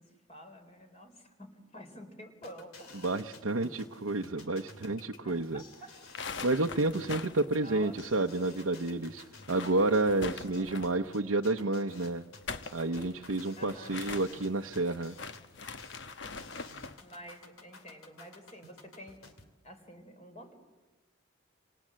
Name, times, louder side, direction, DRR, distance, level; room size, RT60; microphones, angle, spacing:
voice 1, 0.0-3.0 3.6-3.8 5.2-5.9 7.6-8.0 10.3-10.7 13.6-14.0 17.0-19.3 19.6-20.5, equal, 30° left, 5 dB, 3.9 m, -50 dB
sound 1, 2.4-19.4, left 3 dB, 90° left, 3.0 m, -53 dB
voice 2, 3.0-5.6 6.4-12.2 12.7-15.2, right 2 dB, 85° right, 2 dB, 0.9 m, -30 dB
sound 2, 5.9-8.6 8.8-8.9 9.3-11.1 12.2-17.0, left 4 dB, 60° left, 1.0 m, -43 dB
28.5 x 26.5 x 7.6 m, 1.2 s
head